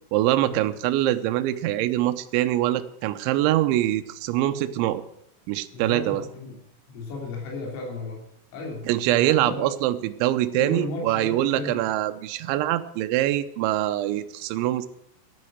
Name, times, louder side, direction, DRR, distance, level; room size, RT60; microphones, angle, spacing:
voice 1, 0.1-5.0 5.5-6.2 8.9-14.9, right 14 dB, 80° right, 9 dB, 3.0 m, -24 dB
voice 2, 5.7-6.6 6.9-8.2 8.5-8.8 9.2-9.8 10.5-11.8, left 2 dB, 80° left, -1 dB, 5.9 m, -34 dB
12.0 x 9.1 x 7.9 m, 0.75 s
omnidirectional pair, 5.7 m